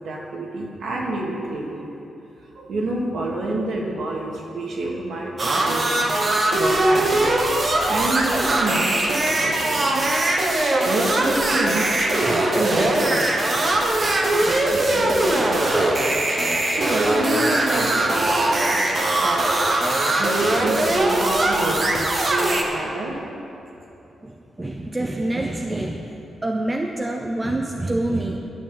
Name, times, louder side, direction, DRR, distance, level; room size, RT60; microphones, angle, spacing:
voice 1, 0.0-1.9 2.5-10.0 10.8-11.9 12.3-13.3 13.5-13.7 14.3-16.1 16.7-18.9 19.2-19.5 20.2-23.1, right 2 dB, 65° right, -2 dB, 2.3 m, -28 dB
sound 1, 5.4-22.6, right 1 dB, 35° right, 1.4 m, -21 dB
voice 2, 24.2-26.2 26.4-28.4, right 1 dB, 15° right, 2 dB, 0.7 m, -26 dB
11.5 x 6.8 x 9.1 m, 2.8 s
wide cardioid pair, 150°, 0 cm